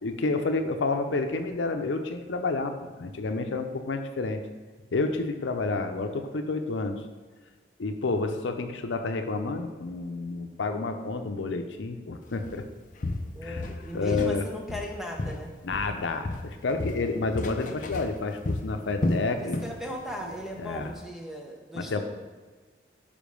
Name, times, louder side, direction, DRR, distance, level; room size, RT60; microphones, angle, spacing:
voice 1, 0.0-4.4 4.9-7.0 7.8-12.7 13.4-13.6 13.9-14.4 15.6-19.6 20.6-20.9 21.7-22.0, left 3 dB, 90° left, 6 dB, 0.6 m, -30 dB
Walk footsteps, 12.4-12.6 13.0-14.4 14.7-16.0 16.2-19.8 20.1-20.3 20.8-20.9, left 2 dB, 45° left, 0.5 m, -32 dB
voice 2, 13.3-15.5 19.4-22.0, equal, ahead, 0 dB, 0.7 m, -37 dB
5.2 x 5.1 x 5.1 m, 1.4 s
head